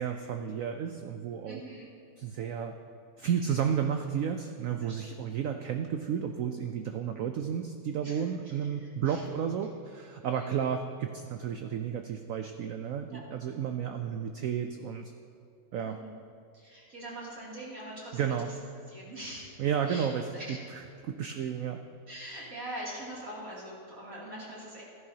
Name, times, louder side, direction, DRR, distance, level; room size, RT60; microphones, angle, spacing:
voice 1, 0.0-1.6 2.2-2.8 3.2-15.1 15.7-16.0 18.1-18.5 19.6-20.3 20.7-21.8, right 8 dB, 85° right, 6 dB, 0.7 m, -32 dB
voice 2, 1.5-1.8 3.2-3.6 4.8-5.0 5.4-5.5 8.0-8.3 9.1-9.2 10.3-10.5 13.0-13.2 15.8-16.1 16.5-18.4 18.9-19.5 19.9-20.1 20.3-20.6 22.1-24.8, right 1 dB, 45° right, -8 dB, 3.1 m, -43 dB
14.0 x 11.0 x 2.8 m, 2.4 s
omnidirectional pair, 2.0 m